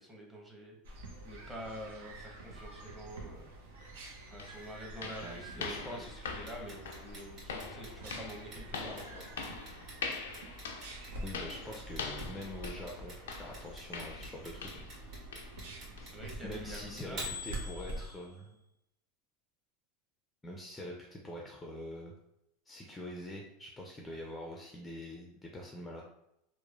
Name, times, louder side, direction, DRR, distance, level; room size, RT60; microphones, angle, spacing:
voice 1, 0.0-3.5 4.3-9.2 16.0-17.5, equal, 10° right, -1 dB, 0.8 m, -47 dB
sound 1, 0.8-18.1, right 1 dB, 85° right, 0.6 m, -47 dB
sound 2, 3.8-3.9 4.4-15.0 15.3-15.6 16.0-16.2 16.6-16.7 17.3-17.4, left 5 dB, 85° left, 0.3 m, -44 dB
voice 2, 5.2-6.1 11.2-15.2 16.4-18.6 20.4-22.1 22.7-26.1, left 1 dB, 15° left, -1 dB, 0.4 m, -45 dB
Clock, 6.5-18.4, left 1 dB, 50° right, 1.5 m, -46 dB
3.0 x 2.1 x 2.3 m, 0.81 s
hypercardioid pair, 105°, 0 cm